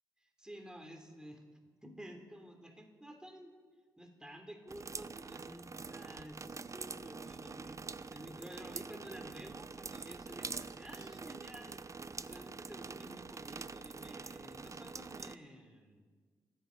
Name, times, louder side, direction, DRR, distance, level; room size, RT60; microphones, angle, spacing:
voice 1, 0.2-1.4 1.8-3.5 4.0-16.0, equal, 10° right, 3 dB, 3.3 m, -52 dB
sound 1, 4.7-15.4, right 4 dB, 35° right, 0.5 m, -45 dB
30.0 x 10.0 x 4.1 m, 1.5 s
supercardioid pair, 45°, 9 cm